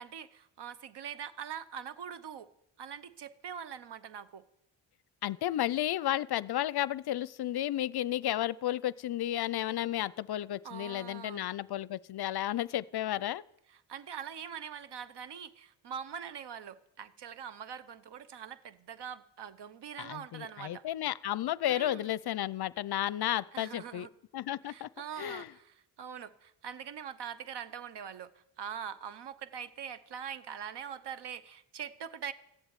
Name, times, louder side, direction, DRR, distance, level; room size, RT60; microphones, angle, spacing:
voice 1, 0.0-2.5 2.8-4.5 10.6-11.5 13.7-20.8 21.7-22.1 23.5-24.1 24.6-32.3, right 8 dB, 60° right, 16 dB, 1.0 m, -43 dB
voice 2, 5.2-13.4 20.0-24.1 24.3-24.9 25.2-25.5, left 13 dB, 55° left, 20 dB, 0.6 m, -33 dB
14.5 x 8.1 x 8.9 m, 0.78 s
cardioid pair, 60°, 47 cm